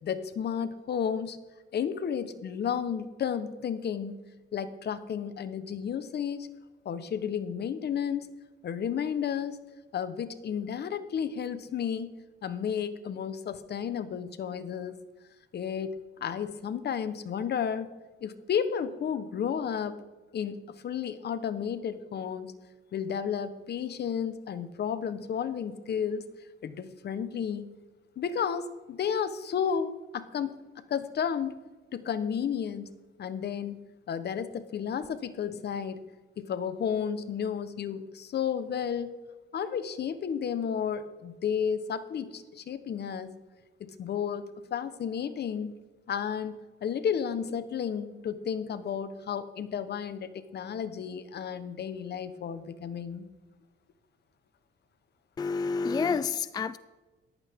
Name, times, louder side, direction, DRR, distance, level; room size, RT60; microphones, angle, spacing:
voice 1, 0.0-1.4 1.7-4.2 4.5-6.5 6.8-8.3 8.6-9.6 9.9-12.1 12.4-15.0 15.5-17.9 18.2-20.0 20.3-22.5 22.9-26.2 26.6-27.7 28.2-30.6 30.9-31.6 31.9-32.9 33.2-36.0 36.4-39.2 39.5-43.3 43.8-44.4 44.7-45.8 46.1-53.3, left 7 dB, 55° left, 12 dB, 1.0 m, -32 dB
voice 2, 55.4-56.8, left 5 dB, 20° left, 15 dB, 0.4 m, -29 dB
14.5 x 11.5 x 3.6 m, 1.2 s
cardioid pair, 90°, 20 cm